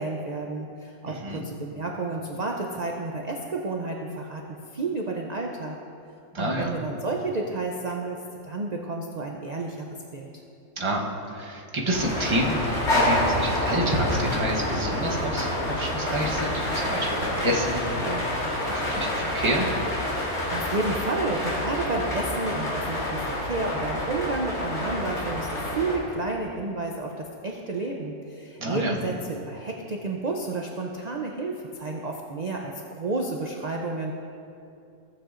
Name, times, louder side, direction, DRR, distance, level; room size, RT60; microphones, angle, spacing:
voice 1, 0.0-5.8 6.4-9.9 10.1-10.4 20.0-34.1, right 3 dB, 65° right, 1 dB, 0.4 m, -31 dB
voice 2, 1.1-1.4 6.3-6.7 10.8-19.7 28.6-28.9, right 1 dB, 25° right, -2 dB, 0.9 m, -28 dB
sound 1, 11.9-26.0, left 1 dB, 50° left, 2.3 m, -28 dB
14.5 x 8.0 x 2.5 m, 2.6 s
omnidirectional pair, 1.5 m